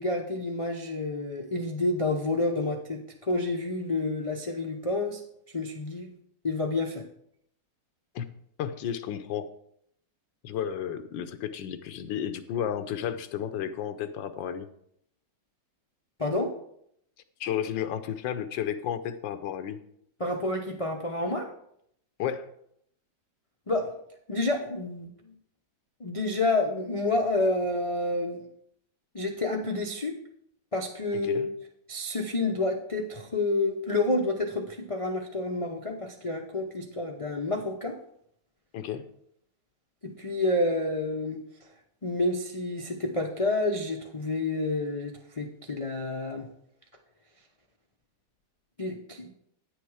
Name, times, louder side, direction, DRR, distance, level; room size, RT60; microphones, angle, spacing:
voice 1, 0.0-5.2 5.5-6.1 6.4-7.0 16.2-16.5 20.2-21.5 23.7-23.9 24.3-25.3 26.0-28.4 29.1-30.2 30.7-31.5 31.9-38.0 40.0-41.4 42.0-46.5 48.8-49.3, left 2 dB, 60° left, 1 dB, 0.3 m, -29 dB
voice 2, 8.6-9.5 10.4-14.7 17.4-19.8 22.2-22.5 31.1-31.5 38.7-39.1, left 9 dB, 85° left, 10 dB, 1.5 m, -32 dB
9.5 x 6.8 x 4.8 m, 0.72 s
omnidirectional pair, 2.0 m